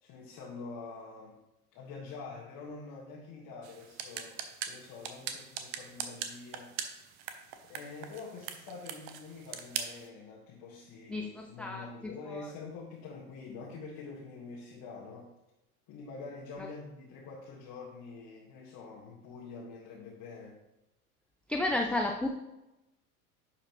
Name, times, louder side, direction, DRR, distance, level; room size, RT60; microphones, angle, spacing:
voice 1, 0.0-1.4 1.7-4.4 4.7-6.8 7.6-15.3 15.9-20.6, left 4 dB, 45° left, -4 dB, 1.7 m, -46 dB
sound 1, 3.6-10.1, right 8 dB, 50° right, 0.9 m, -41 dB
voice 2, 11.1-12.5 16.6-16.7 21.5-22.3, left 2 dB, 5° left, 2 dB, 0.4 m, -33 dB
10.5 x 4.8 x 3.0 m, 0.95 s
figure-of-eight pair, 75°, 43 cm